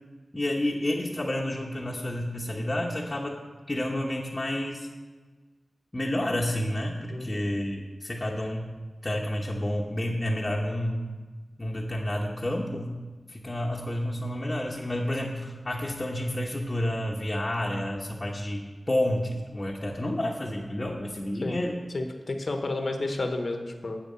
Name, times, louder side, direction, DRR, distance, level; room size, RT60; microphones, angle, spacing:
voice 1, 0.3-3.4 3.7-4.9 5.9-8.7 9.0-11.2 11.6-13.0 13.3-21.8, left 1 dB, 30° left, -3 dB, 1.0 m, -30 dB
voice 2, 7.1-7.4 21.4-21.6 21.9-24.0, left 2 dB, 55° left, 5 dB, 1.0 m, -31 dB
7.9 x 7.0 x 5.5 m, 1.4 s
cardioid pair, 55°, 0 cm